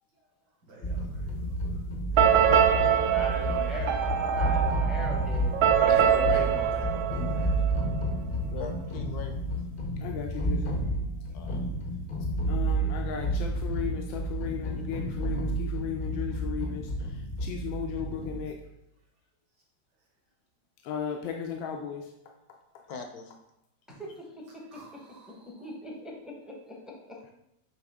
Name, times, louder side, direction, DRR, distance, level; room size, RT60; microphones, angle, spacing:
voice 1, 0.6-3.9 5.8-7.7 23.9-24.0 24.7-25.7, right 2 dB, 60° right, -4 dB, 2.4 m, -47 dB
sound 1, 0.8-18.4, right 1 dB, 50° left, 0.6 m, -31 dB
sound 2, 2.2-7.9, right 9 dB, 80° right, 1.4 m, -24 dB
voice 2, 2.3-2.7 5.9-6.7 8.5-9.4 11.3-11.6 22.9-23.3, left 5 dB, 65° left, 4 dB, 1.1 m, -38 dB
voice 3, 3.0-5.5 24.5-27.3, left 1 dB, ahead, -1 dB, 0.6 m, -41 dB
voice 4, 10.0-10.8 12.5-18.6 20.8-22.1, left 7 dB, 85° left, 2 dB, 1.4 m, -36 dB
9.0 x 3.5 x 3.6 m, 0.83 s
omnidirectional pair, 2.1 m